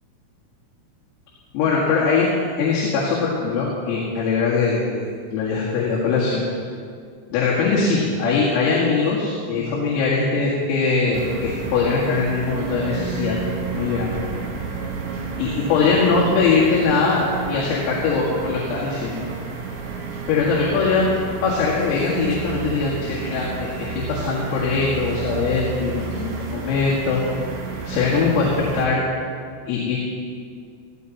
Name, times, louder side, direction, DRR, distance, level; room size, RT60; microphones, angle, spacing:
voice 1, 1.5-2.3 2.6-5.1 5.3-6.4 7.3-13.4 13.7-14.1 15.4-19.3 20.3-21.1 21.4-27.2 27.9-29.0 29.7-30.0, left 4 dB, 85° left, -6 dB, 4.7 m, -21 dB
sound 1, 11.1-28.9, right 5 dB, 65° right, 4.1 m, -31 dB
16.5 x 15.0 x 4.1 m, 2.2 s
omnidirectional pair, 5.9 m